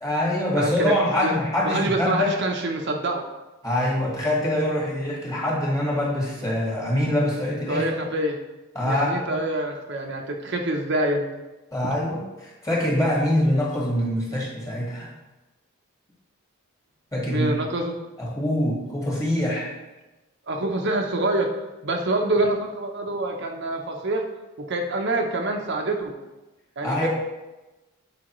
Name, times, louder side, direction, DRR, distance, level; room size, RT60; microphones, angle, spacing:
voice 1, 0.0-2.3 3.6-7.9 8.7-9.3 11.7-15.1 17.1-17.5 18.2-19.7 26.8-27.1, left 1 dB, 15° left, -4 dB, 1.7 m, -24 dB
voice 2, 0.5-0.9 1.2-1.3 1.6-3.2 7.7-8.4 8.8-11.3 17.3-18.0 20.5-21.5 21.8-24.2 24.6-26.1 26.8-27.1, right 2 dB, 55° right, 1 dB, 0.7 m, -26 dB
8.7 x 5.0 x 3.0 m, 1.1 s
head